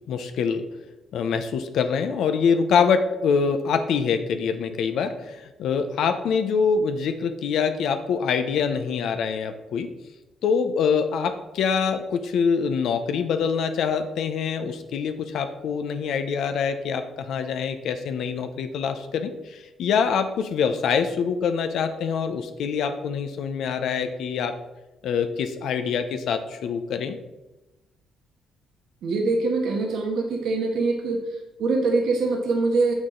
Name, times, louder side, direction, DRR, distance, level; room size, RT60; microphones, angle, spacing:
voice 1, 0.1-0.6 1.1-9.9 10.4-24.5 25.0-27.2, left 6 dB, 75° left, 8 dB, 0.7 m, -25 dB
voice 2, 29.0-31.2 31.6-32.9, right 3 dB, 75° right, 1 dB, 1.3 m, -23 dB
6.9 x 6.2 x 3.8 m, 1.0 s
cardioid pair, 90°, 0 cm